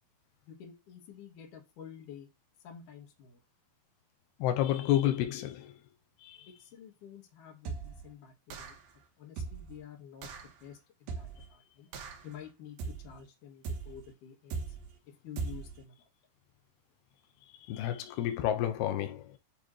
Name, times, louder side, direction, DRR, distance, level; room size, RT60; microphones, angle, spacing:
voice 1, 0.5-2.3 2.6-3.4 6.5-8.8 9.2-10.3 10.6-11.9 12.2-14.7 15.0-16.1, left 8 dB, 60° left, 2.9 m, -50 dB
voice 2, 4.4-5.7 6.2-6.5 17.6-19.3, left 12 dB, 90° left, 2.7 m, -30 dB
sound 1, 7.6-8.1 8.5-8.9 9.4-9.8 10.2-10.5 11.1-11.5 11.9-12.3 12.8-13.2 13.6-14.1 14.5-14.9 15.4-15.8, right 5 dB, 75° right, 3.2 m, -39 dB
10.0 x 3.4 x 3.1 m
omnidirectional pair, 4.5 m